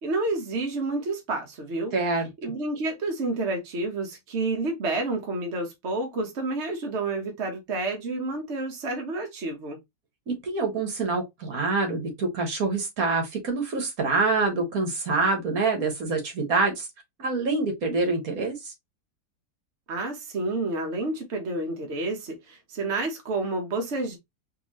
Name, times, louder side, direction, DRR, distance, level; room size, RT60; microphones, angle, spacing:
voice 1, 0.0-1.9 2.4-9.8 19.9-24.2, right 2 dB, 50° right, 1.3 m, -29 dB
voice 2, 1.9-2.3 10.3-16.9 17.2-18.7, right 3 dB, 70° right, 1.8 m, -26 dB
4.4 x 2.6 x 3.0 m
omnidirectional pair, 1.6 m